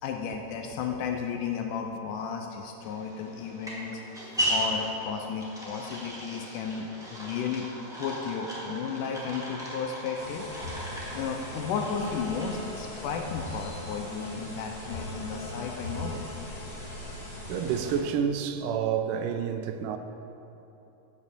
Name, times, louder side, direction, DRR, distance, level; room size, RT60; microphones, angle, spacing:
voice 1, 0.0-4.0 4.5-7.7 8.0-10.5 11.1-16.3, left 6 dB, 80° left, 2.0 m, -33 dB
sound 1, 2.8-14.0, right 1 dB, 5° right, 0.7 m, -37 dB
sound 2, 10.1-18.0, left 1 dB, 40° left, 2.5 m, -39 dB
voice 2, 17.5-20.0, right 7 dB, 80° right, 2.0 m, -29 dB
8.6 x 7.3 x 6.7 m
omnidirectional pair, 4.1 m